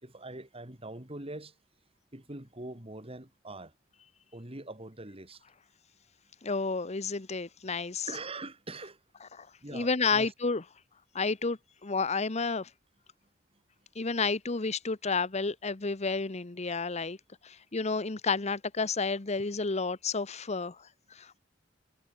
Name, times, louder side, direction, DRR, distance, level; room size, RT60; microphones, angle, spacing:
voice 1, 0.0-1.5 2.1-3.7 4.3-5.4 8.1-9.0 9.6-10.3, right 2 dB, 30° right, 3.4 m, -43 dB
voice 2, 6.4-8.1 9.3-9.5 9.7-10.6 11.1-12.7 13.9-17.2 17.4-21.4, left 4 dB, 35° left, 1.0 m, -31 dB
head